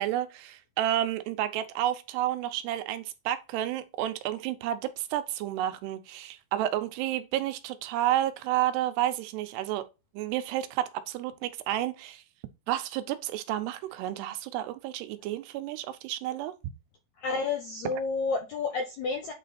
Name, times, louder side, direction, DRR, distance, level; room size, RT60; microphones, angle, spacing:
voice 1, 0.0-9.8 10.1-12.2 12.7-16.5, right 12 dB, 90° right, 2.9 m, -31 dB
voice 2, 17.2-19.3, left 4 dB, 75° left, 1.7 m, -30 dB
9.0 x 3.9 x 4.2 m
omnidirectional pair, 4.6 m